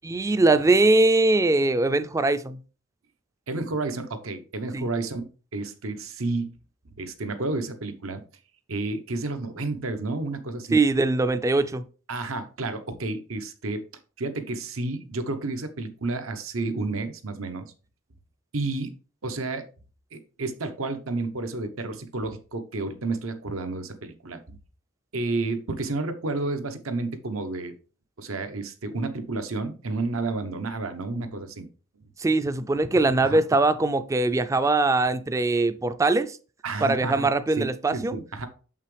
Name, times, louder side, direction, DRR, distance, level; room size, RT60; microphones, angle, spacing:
voice 1, 0.0-2.6 4.7-4.8 10.7-11.8 32.2-36.4 36.8-38.1, right 2 dB, 15° right, 0.3 m, -22 dB
voice 2, 3.5-5.2 5.5-6.5 7.0-8.2 8.7-10.8 12.1-13.8 14.2-17.7 18.5-18.9 19.2-19.7 20.1-24.6 25.1-27.7 28.2-31.7 33.2-33.4 36.6-37.3 37.6-38.5, right 3 dB, 85° right, 1.0 m, -31 dB
6.8 x 5.6 x 3.3 m
head